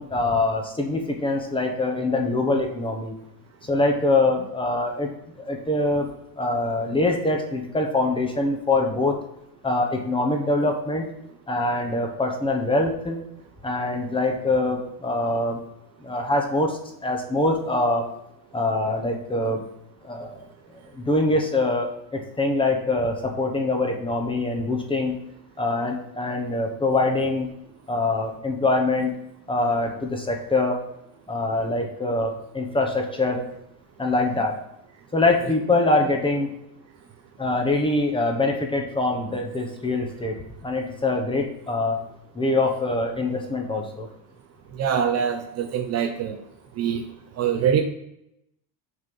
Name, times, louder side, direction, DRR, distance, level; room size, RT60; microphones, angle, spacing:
voice 1, 0.0-3.1 3.6-5.1 5.4-6.1 6.4-9.1 9.6-11.1 11.5-13.2 13.6-15.6 16.0-18.1 18.5-19.6 20.0-20.4 20.9-25.2 25.6-27.5 27.9-29.2 29.5-30.8 31.3-33.4 34.0-34.5 35.1-36.5 37.4-40.3 40.6-42.0 42.3-44.1, left 2 dB, 10° left, 2 dB, 1.0 m, -24 dB
voice 2, 44.7-46.4 46.8-47.0 47.4-47.8, right 8 dB, 35° right, 6 dB, 0.6 m, -24 dB
6.6 x 4.3 x 5.4 m, 0.81 s
cardioid pair, 150°, 45 cm